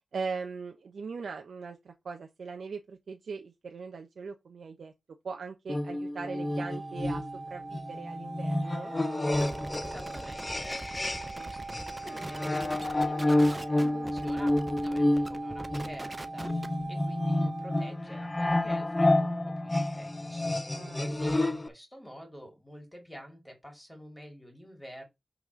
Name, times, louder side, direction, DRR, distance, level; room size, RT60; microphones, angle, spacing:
voice 1, 0.1-4.9 5.2-7.2 7.5-8.9 20.7-21.0, right 5 dB, 90° right, 0.8 m, -40 dB
sound 1, 5.7-11.4 11.7-21.7, left 1 dB, 25° left, 0.8 m, -29 dB
sound 2, 6.3-17.9, right 3 dB, 55° right, 0.4 m, -42 dB
sound 3, 9.3-16.8, right 1 dB, 20° right, 0.8 m, -43 dB
voice 2, 9.8-10.9 11.3-11.6 11.9-20.6 20.9-25.1, equal, 5° left, 3.1 m, -48 dB
5.8 x 4.2 x 6.3 m
wide cardioid pair, 120°, 0 cm